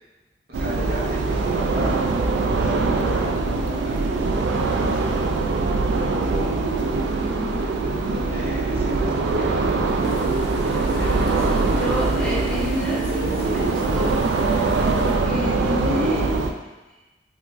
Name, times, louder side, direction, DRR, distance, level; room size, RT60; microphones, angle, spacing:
voice 1, 0.5-5.3 5.9-6.6 7.5-9.7, left 1 dB, 60° right, -5 dB, 0.8 m, -38 dB
sound 1, 0.5-16.5, right 3 dB, 85° right, 0.3 m, -22 dB
voice 2, 7.2-7.6 10.7-14.2 14.6-16.3, equal, 5° left, -6 dB, 0.5 m, -29 dB
sound 2, 10.0-15.2, left 2 dB, 60° left, 0.4 m, -41 dB
3.2 x 2.4 x 3.1 m, 1.1 s
head